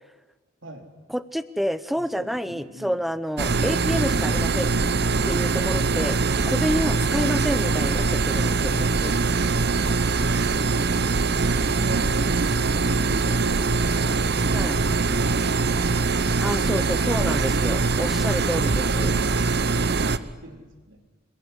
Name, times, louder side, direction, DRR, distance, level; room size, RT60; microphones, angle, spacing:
voice 1, 1.1-4.7 5.2-6.2 6.5-9.1 14.5-14.8 16.4-19.1, equal, ahead, 14 dB, 0.8 m, -29 dB
voice 2, 1.9-3.0 6.3-6.5 10.2-16.3 17.6-21.2, right 1 dB, 70° right, 4 dB, 4.0 m, -41 dB
sound 1, 3.4-20.2, right 3 dB, 55° right, 0.9 m, -22 dB
26.5 x 21.5 x 9.8 m, 1.2 s
head